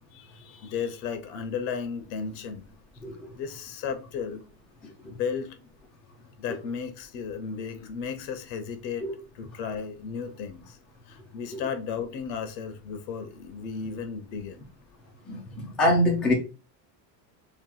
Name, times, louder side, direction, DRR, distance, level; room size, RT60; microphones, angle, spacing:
voice 1, 0.1-2.7 3.3-4.4 5.1-5.6 6.4-9.1 9.3-10.8 11.1-14.6, left 6 dB, 85° left, 1.0 m, -34 dB
voice 2, 15.3-16.3, left 1 dB, ahead, 0.3 m, -24 dB
3.0 x 2.5 x 3.7 m
supercardioid pair, 145°, 50 cm